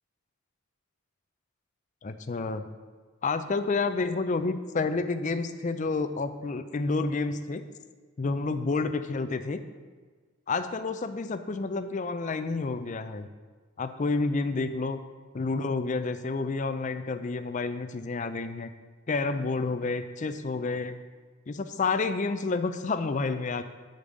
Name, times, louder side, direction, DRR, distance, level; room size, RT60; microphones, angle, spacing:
voice 1, 2.0-2.6 3.2-7.6 8.2-9.6 10.5-13.3 13.8-15.0 15.3-18.7 19.1-21.0 21.5-23.6, left 3 dB, 35° left, 10 dB, 0.4 m, -29 dB
8.4 x 5.2 x 6.4 m, 1.5 s
head